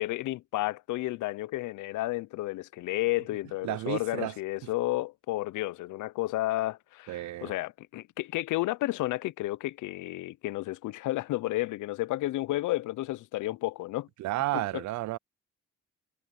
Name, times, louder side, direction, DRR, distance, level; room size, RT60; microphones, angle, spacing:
voice 1, 0.0-14.1 14.5-14.8, left 17 dB, 80° left, 0.6 m, -32 dB
voice 2, 3.6-4.4 7.1-7.5 14.2-15.2, right 16 dB, 70° right, 0.5 m, -32 dB
cardioid pair, 90°, 30 cm